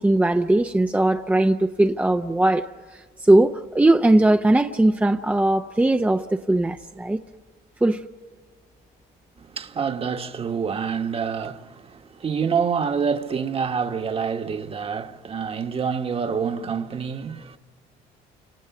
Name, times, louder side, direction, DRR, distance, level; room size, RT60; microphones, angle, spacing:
voice 1, 0.0-2.7 2.9-7.2 7.8-8.0, right 1 dB, 10° right, 0.7 m, -19 dB
voice 2, 9.4-17.6, right 6 dB, 35° right, 1.4 m, -27 dB
30.0 x 27.0 x 5.9 m
cardioid pair, 110°, 17 cm